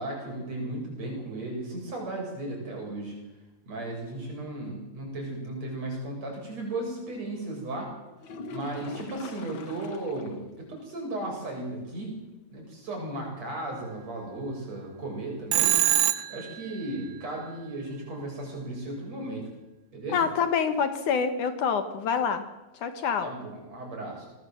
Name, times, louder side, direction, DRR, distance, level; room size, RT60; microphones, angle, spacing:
voice 1, 0.0-3.1 3.7-7.9 8.5-12.1 12.5-15.8 16.3-19.4 19.9-20.2 23.2-24.3, right 2 dB, 50° right, 0 dB, 8.8 m, -35 dB
sound 1, 8.2-10.4 10.8-10.9 11.3-11.4 15.2-15.3, left 4 dB, 50° left, 1.7 m, -42 dB
Telephone, 15.5-16.6, right 14 dB, 75° right, 2.5 m, -23 dB
voice 2, 20.1-22.5 22.7-23.3, left 6 dB, 65° left, 9 dB, 2.8 m, -26 dB
25.5 x 19.0 x 7.9 m, 1.0 s
omnidirectional pair, 3.9 m